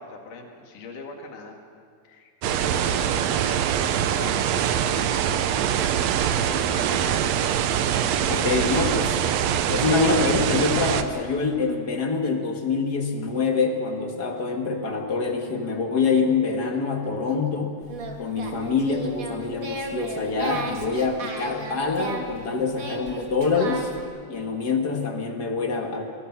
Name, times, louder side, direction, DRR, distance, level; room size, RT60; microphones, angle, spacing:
voice 1, 0.0-1.6 2.0-5.1 5.5-7.3, left 3 dB, 75° left, 2 dB, 3.7 m, -41 dB
sound 1, 2.4-11.0, right 9 dB, 70° right, 1.8 m, -23 dB
voice 2, 8.3-9.2 9.7-17.8 18.2-23.9 24.3-26.0, left 4 dB, 40° left, 3 dB, 1.7 m, -25 dB
Singing, 17.8-24.0, right 3 dB, 40° right, 2.3 m, -35 dB
22.5 x 21.5 x 6.0 m, 2.1 s
omnidirectional pair, 3.6 m